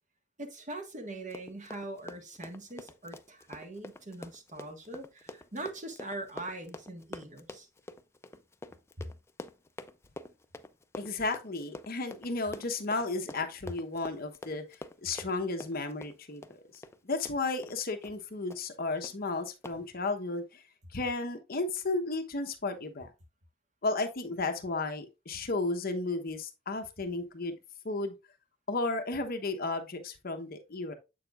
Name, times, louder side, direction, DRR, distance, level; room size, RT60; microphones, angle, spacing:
voice 1, 0.4-7.7 9.0-9.1, right 2 dB, 40° right, 1.5 m, -42 dB
Run, 1.1-17.8 18.0-18.2 18.5-18.8 19.0-19.1 19.6-19.8, left 2 dB, 15° left, 0.4 m, -46 dB
voice 2, 11.0-14.6 15.0-20.6 20.9-23.1 23.8-27.5 27.8-28.1 28.7-30.9, left 3 dB, 50° left, 1.0 m, -33 dB
7.9 x 6.6 x 2.4 m
head